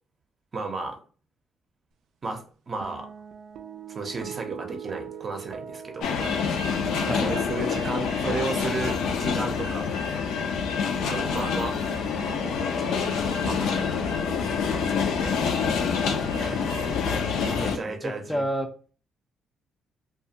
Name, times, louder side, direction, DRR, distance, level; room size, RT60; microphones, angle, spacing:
voice 1, 0.5-1.0 2.2-3.1 3.9-6.1 7.0-9.9 11.0-11.8 12.4-13.1 13.4-14.1 14.7-15.4 16.4-16.8 17.6-18.4, right 3 dB, 40° right, 4 dB, 0.6 m, -34 dB
sound 1, 2.8-9.4, right 8 dB, 80° right, 0.3 m, -43 dB
sound 2, 6.0-17.8, left 6 dB, 85° left, 0.4 m, -27 dB
voice 2, 7.0-7.5 16.9-18.7, equal, 10° left, 4 dB, 0.4 m, -32 dB
2.4 x 2.3 x 2.8 m, 0.39 s
cardioid pair, 90°, 0 cm